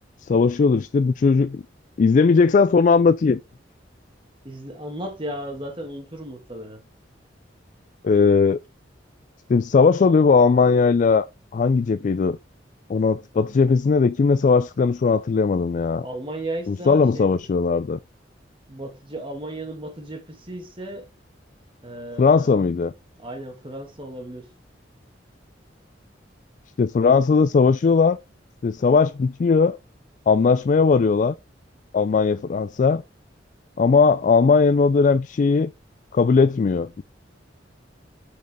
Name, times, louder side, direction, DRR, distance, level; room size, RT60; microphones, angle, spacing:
voice 1, 0.2-1.6 2.0-3.4 8.0-8.6 9.5-11.3 11.5-12.4 12.9-16.1 16.7-18.0 22.2-22.9 26.8-28.2 28.6-29.8 30.3-31.3 31.9-33.0 33.8-35.7 36.1-37.0, left 4 dB, 45° left, 0.3 m, -18 dB
voice 2, 4.4-6.8 16.0-17.4 18.7-21.1 21.8-22.5 23.2-24.5, right 1 dB, 30° right, 2.0 m, -35 dB
6.5 x 5.3 x 3.6 m
head